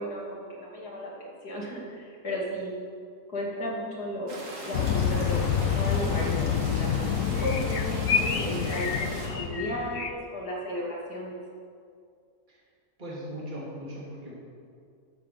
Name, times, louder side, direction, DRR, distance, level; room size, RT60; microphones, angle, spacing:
voice 1, 0.0-2.7 3.3-5.4 5.7-11.4, equal, 90° left, -4 dB, 3.1 m, -34 dB
sound 1, 4.3-9.3, right 1 dB, 55° right, 2.5 m, -40 dB
sound 2, 4.7-10.1, left 8 dB, 70° left, 1.0 m, -28 dB
sound 3, 4.8-5.1 7.4-10.1, left 5 dB, 50° left, 0.8 m, -31 dB
voice 2, 13.0-14.3, equal, 30° right, -6 dB, 2.8 m, -39 dB
12.0 x 7.5 x 6.7 m, 2.3 s
omnidirectional pair, 1.6 m